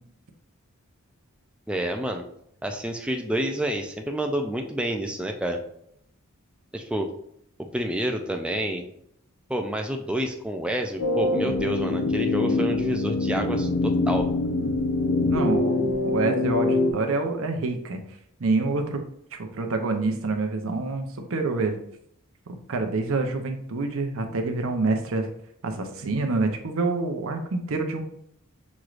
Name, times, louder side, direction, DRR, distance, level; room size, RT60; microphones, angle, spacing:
voice 1, 1.7-2.2 2.6-5.6 6.7-7.1 7.6-8.8 9.5-14.3, right 1 dB, 5° right, 3 dB, 0.3 m, -28 dB
sound 1, 11.0-16.9, left 2 dB, 90° left, 0.8 m, -24 dB
voice 2, 15.3-18.0 18.4-19.0 19.3-21.8 22.5-25.3 25.6-28.0, right 3 dB, 65° right, 5 dB, 0.7 m, -27 dB
6.2 x 3.1 x 2.5 m, 0.71 s
head